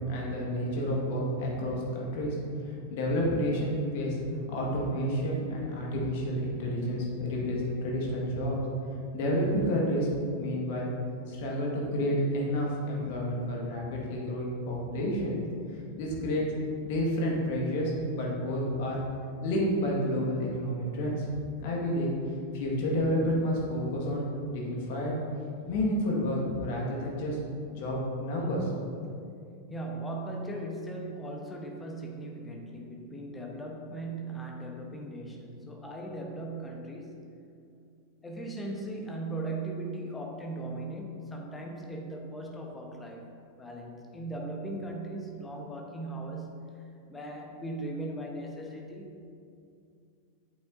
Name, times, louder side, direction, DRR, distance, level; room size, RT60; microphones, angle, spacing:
voice 1, 0.1-2.4 2.9-4.2 4.5-8.6 9.1-10.1 10.4-10.9 11.3-15.4 16.0-16.4 16.8-19.0 19.4-21.3 21.6-22.1 22.5-25.1 25.7-27.4 27.7-28.8, equal, 50° left, -3 dB, 1.9 m, -30 dB
voice 2, 29.7-37.2 38.2-43.2 43.6-49.2, right 2 dB, 10° left, 0 dB, 1.1 m, -38 dB
8.2 x 8.1 x 2.7 m, 2.4 s
figure-of-eight pair, 90°, 0 cm